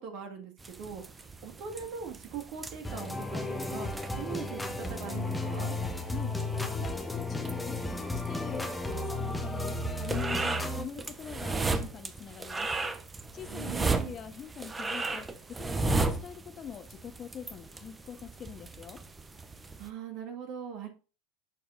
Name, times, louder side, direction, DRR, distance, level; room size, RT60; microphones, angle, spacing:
voice 1, 0.0-5.8 13.5-14.1 19.8-20.9, right 7 dB, 50° right, 4 dB, 1.8 m, -41 dB
sound 1, 0.6-19.9, right 3 dB, 15° right, 0.7 m, -36 dB
sound 2, 2.8-10.8, left 2 dB, 5° left, 1.1 m, -34 dB
voice 2, 6.1-6.4 6.7-12.7 13.3-19.0, left 8 dB, 35° left, 9 dB, 1.0 m, -44 dB
11.0 x 4.5 x 2.5 m, 0.34 s
hypercardioid pair, 80°, 0 cm